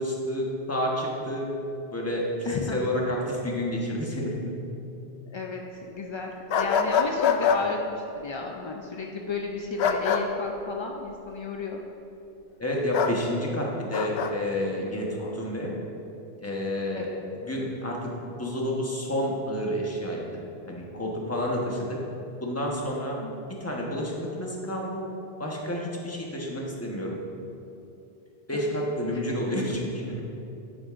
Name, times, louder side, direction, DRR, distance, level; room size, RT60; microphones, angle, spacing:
voice 1, 0.0-1.5 1.9-4.5 12.6-15.8 16.4-17.1 17.4-20.4 20.7-22.0 22.4-23.2 23.5-25.0 25.4-27.2 28.5-30.2, equal, 15° left, -2 dB, 1.0 m, -30 dB
voice 2, 2.5-2.8 5.3-11.8 15.2-15.4 16.9-17.2 23.2-23.4 28.8-29.4, left 4 dB, 50° left, 1 dB, 0.3 m, -34 dB
sound 1, 6.5-7.6 9.8-10.2 12.9-13.1 13.9-14.3, left 7 dB, 85° left, 0.9 m, -24 dB
10.5 x 8.9 x 2.5 m, 2.8 s
omnidirectional pair, 1.1 m